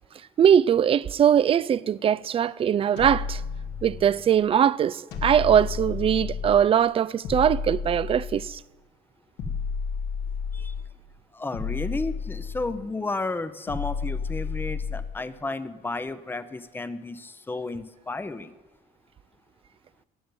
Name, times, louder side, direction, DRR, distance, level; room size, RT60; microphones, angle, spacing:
voice 1, 0.4-3.4 3.8-8.6, right 9 dB, 35° right, 0.4 m, -21 dB
sound 1, 3.0-4.3 5.1-6.7 7.2-8.7 9.4-11.0 11.5-12.9 13.7-15.3, left 5 dB, 85° left, 2.1 m, -32 dB
voice 2, 11.3-18.5, left 3 dB, 10° left, 0.7 m, -33 dB
13.5 x 7.5 x 9.7 m
cardioid pair, 110°, 17 cm